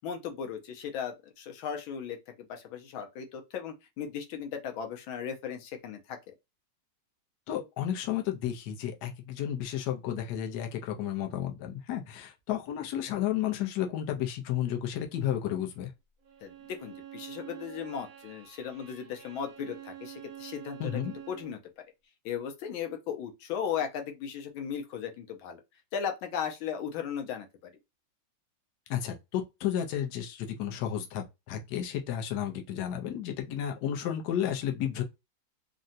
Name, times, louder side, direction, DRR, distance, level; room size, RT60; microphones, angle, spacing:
voice 1, 0.0-6.2 16.4-21.6 22.2-25.6 25.9-27.5, left 7 dB, 85° left, 1.4 m, -37 dB
voice 2, 7.5-15.9 20.8-21.1 28.9-35.0, left 10 dB, 65° left, 1.0 m, -32 dB
Bowed string instrument, 16.2-21.6, right 11 dB, 65° right, 0.9 m, -47 dB
3.7 x 2.1 x 2.6 m
omnidirectional pair, 2.2 m